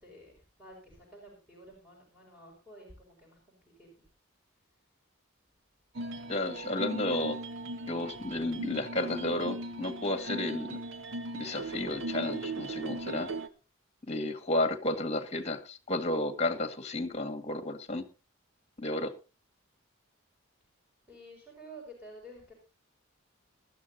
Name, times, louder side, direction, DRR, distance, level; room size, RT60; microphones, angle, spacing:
voice 1, 0.0-3.9 21.1-22.5, right 1 dB, 5° right, -2 dB, 5.3 m, -51 dB
sound 1, 5.9-13.5, right 2 dB, 65° right, 1.1 m, -38 dB
voice 2, 6.3-7.4 7.9-10.8 11.3-13.3 14.1-18.1 18.8-19.1, left 2 dB, 30° left, 9 dB, 1.8 m, -32 dB
20.0 x 13.0 x 2.7 m, 0.30 s
head